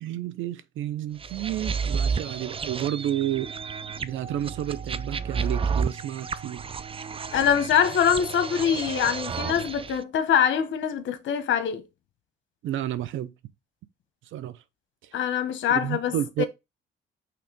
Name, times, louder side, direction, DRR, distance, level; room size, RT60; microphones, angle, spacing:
voice 1, 0.0-3.5 4.0-6.6 12.6-13.3 14.3-14.6 15.7-16.4, right 12 dB, 80° right, 0.7 m, -31 dB
sound 1, 1.2-10.0, right 6 dB, 25° right, 0.5 m, -31 dB
voice 2, 7.3-11.9 15.1-16.4, left 8 dB, 75° left, 1.1 m, -24 dB
5.8 x 3.1 x 5.2 m
cardioid pair, 90°, 20 cm